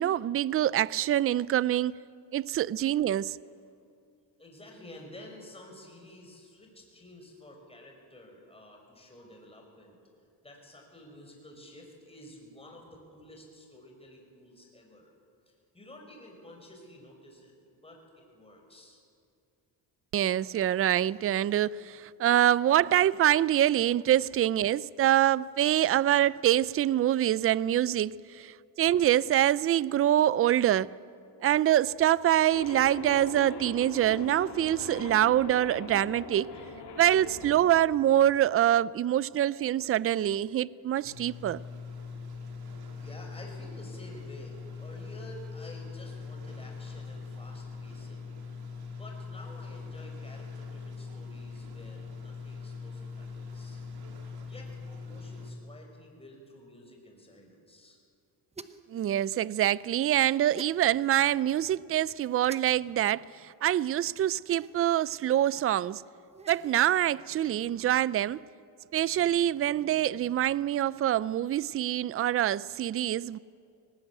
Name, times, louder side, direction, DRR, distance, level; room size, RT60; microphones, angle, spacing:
voice 1, 0.0-1.9 2.3-3.4 20.1-30.9 31.4-36.5 37.0-41.6 58.9-63.3 63.6-66.0 66.5-68.4 68.9-73.4, right 12 dB, 35° right, 0.4 m, -25 dB
voice 2, 4.4-10.0 10.4-15.1 15.5-17.5 17.8-19.0 42.9-48.3 48.9-53.8 54.4-58.0, left 1 dB, 15° left, 5.6 m, -51 dB
sound 1, 32.5-37.6, left 4 dB, 80° left, 3.6 m, -41 dB
sound 2, 41.0-55.5, left 4 dB, 65° right, 3.4 m, -42 dB
sound 3, 58.5-58.9 60.5-60.8 62.5-62.6 64.4-64.9 66.2-66.8, right 4 dB, 15° right, 0.8 m, -46 dB
19.5 x 18.5 x 8.3 m
cardioid pair, 105°, 41 cm